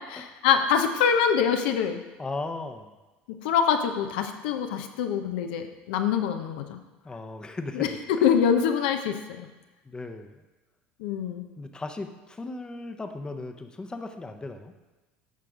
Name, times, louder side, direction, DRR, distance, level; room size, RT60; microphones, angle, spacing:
voice 1, 0.1-2.0 3.3-6.8 7.7-9.5 11.0-11.5, left 7 dB, 80° left, 5 dB, 0.7 m, -25 dB
voice 2, 2.2-3.0 7.0-8.0 9.8-10.4 11.6-14.7, left 2 dB, 15° left, 6 dB, 0.8 m, -36 dB
9.3 x 4.5 x 5.0 m, 1.1 s
supercardioid pair, 90°, 5 cm